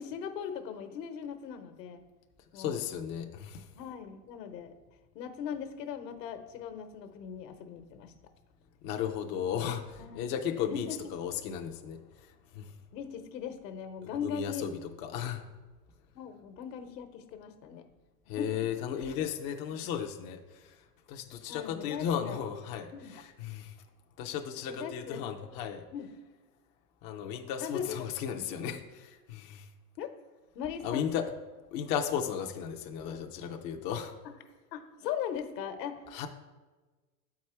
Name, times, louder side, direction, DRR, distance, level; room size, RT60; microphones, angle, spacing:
voice 1, 0.0-2.0 2.5-2.8 3.7-4.7 5.1-8.1 10.0-10.2 10.7-11.0 12.9-14.7 16.1-17.9 18.3-18.7 19.7-19.9 21.5-22.4 22.9-23.1 24.6-25.6 25.9-26.1 27.6-28.0 28.3-28.5 30.0-30.1 30.5-31.2 34.7-36.0, left 8 dB, 80° left, 8 dB, 1.0 m, -39 dB
voice 2, 2.5-3.7 8.8-12.7 14.2-15.4 18.3-23.8 24.2-25.8 27.0-29.7 30.8-31.3 31.7-34.1 36.1-36.3, left 8 dB, 25° left, 3 dB, 0.3 m, -35 dB
7.6 x 4.7 x 4.3 m, 1.3 s
supercardioid pair, 120°, 49 cm